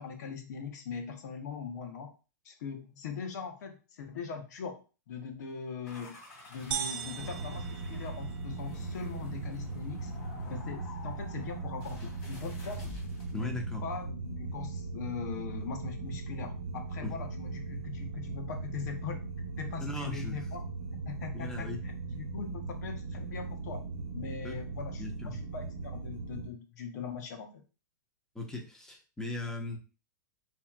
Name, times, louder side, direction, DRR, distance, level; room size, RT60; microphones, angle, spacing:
voice 1, 0.0-2.1 2.4-4.8 5.1-6.2 6.5-10.1 10.5-13.0 13.3-13.5 13.8-19.2 19.5-20.6 21.1-23.9 24.1-27.6, left 6 dB, 65° left, 5 dB, 1.0 m, -41 dB
sound 1, 5.9-13.4, left 4 dB, 45° left, 2.6 m, -49 dB
sound 2, 6.7-8.7, right 10 dB, 45° right, 0.5 m, -38 dB
sound 3, 7.2-26.5, right 3 dB, 75° right, 0.9 m, -39 dB
voice 2, 13.3-13.8 17.0-17.1 19.8-20.4 21.3-21.8 24.4-24.5 25.0-25.4 28.3-29.8, left 2 dB, 5° left, 1 dB, 1.1 m, -38 dB
6.9 x 3.0 x 2.4 m, 0.33 s
hypercardioid pair, 115°, 10 cm